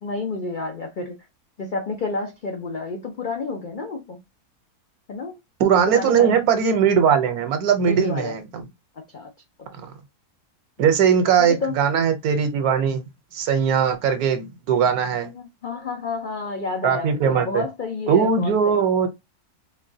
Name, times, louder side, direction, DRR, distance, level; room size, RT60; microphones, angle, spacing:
voice 1, 0.0-1.2 1.6-4.2 5.1-5.4 5.9-6.4 7.9-8.3 9.1-9.3 11.4-11.7 15.2-18.8, left 3 dB, 80° left, 0.4 m, -30 dB
voice 2, 5.6-8.7 9.8-9.9 10.8-13.0 13.3-15.3 16.8-17.6 18.1-19.1, right 7 dB, 70° right, 1.2 m, -20 dB
4.1 x 2.2 x 2.6 m
omnidirectional pair, 1.7 m